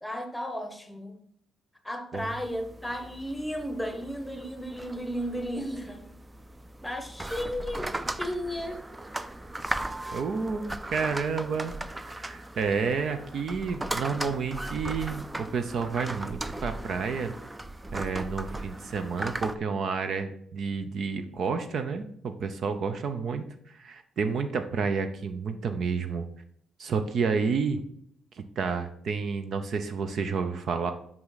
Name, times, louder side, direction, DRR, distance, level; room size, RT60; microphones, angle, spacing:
voice 1, 0.0-1.2 1.8-6.1 6.8-8.8, equal, 5° left, 6 dB, 1.2 m, -34 dB
sound 1, 2.2-19.6, right 1 dB, 15° right, 0.4 m, -38 dB
voice 2, 10.1-17.3 17.9-26.3 26.8-27.8 28.4-30.9, right 5 dB, 60° right, 8 dB, 0.6 m, -30 dB
5.7 x 5.4 x 4.0 m, 0.69 s
cardioid pair, 90°, 0 cm